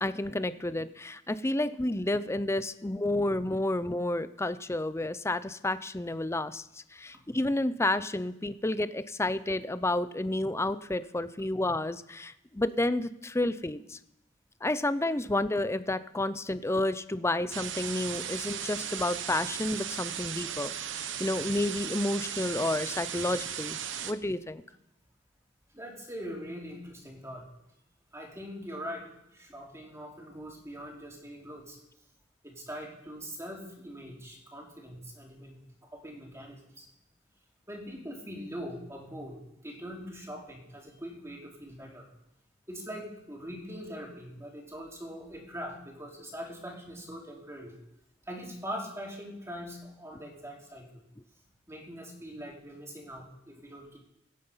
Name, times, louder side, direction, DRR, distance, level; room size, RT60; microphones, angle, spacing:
voice 1, 0.0-6.6 6.9-14.0 14.6-24.6, left 1 dB, 15° left, 14 dB, 0.6 m, -30 dB
sound 1, 17.5-24.1, right 9 dB, 70° right, 1.0 m, -36 dB
voice 2, 25.7-27.5 28.1-31.8 32.4-36.9 37.7-42.1 42.7-47.7 48.3-50.9 51.7-54.0, equal, 15° right, -1 dB, 3.8 m, -42 dB
23.5 x 9.6 x 5.6 m, 0.84 s
head